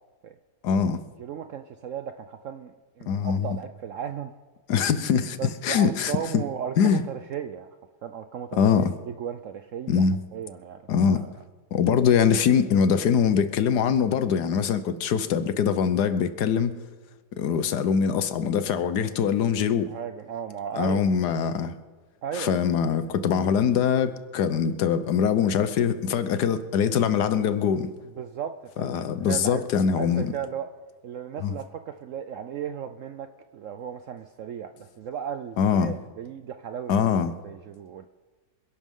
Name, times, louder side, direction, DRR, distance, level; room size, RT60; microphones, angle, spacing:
voice 1, 0.6-1.0 3.1-3.5 4.7-6.4 6.8-7.0 8.5-8.9 9.9-10.2 10.9-11.2 11.7-16.7 17.4-19.9 20.7-21.7 22.3-27.9 28.8-30.3 31.4-31.5 35.6-35.9 36.9-37.3, left 7 dB, 70° left, 12 dB, 1.4 m, -23 dB
voice 2, 1.2-4.3 5.4-7.7 8.0-10.0 10.3-10.8 11.1-11.3 19.9-21.1 22.2-22.6 28.1-29.7 29.9-30.7 31.0-36.9 37.4-38.1, right 8 dB, 70° right, 9 dB, 0.7 m, -35 dB
26.5 x 11.5 x 3.7 m, 1.3 s
omnidirectional pair, 1.8 m